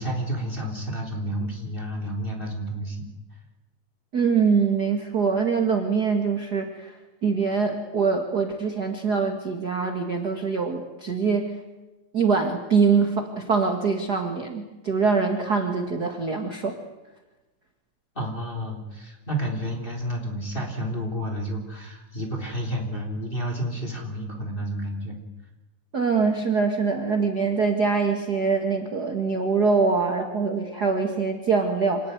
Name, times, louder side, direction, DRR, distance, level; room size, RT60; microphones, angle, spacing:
voice 1, 0.0-3.1 18.2-25.2, equal, 15° left, 2 dB, 3.8 m, -30 dB
voice 2, 4.1-7.0 7.2-11.6 12.1-16.8 25.9-32.1, right 5 dB, 35° right, 4 dB, 2.0 m, -24 dB
27.0 x 19.0 x 9.5 m, 1.1 s
omnidirectional pair, 3.7 m